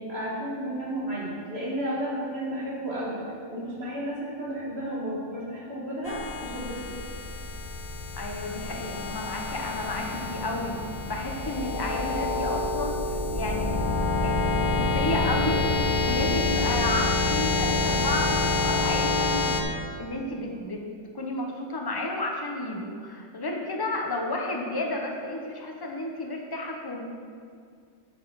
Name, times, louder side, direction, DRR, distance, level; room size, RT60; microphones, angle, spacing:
voice 1, 0.0-3.2 3.5-6.9, right 1 dB, 35° right, -5 dB, 1.8 m, -32 dB
sound 1, 6.1-19.6, left 3 dB, 55° left, 1.1 m, -27 dB
voice 2, 8.2-10.8 11.1-13.8 14.2-19.6 20.0-20.8 21.1-27.1, left 2 dB, 25° left, 0 dB, 0.5 m, -32 dB
9.1 x 6.3 x 4.7 m, 2.2 s
omnidirectional pair, 1.9 m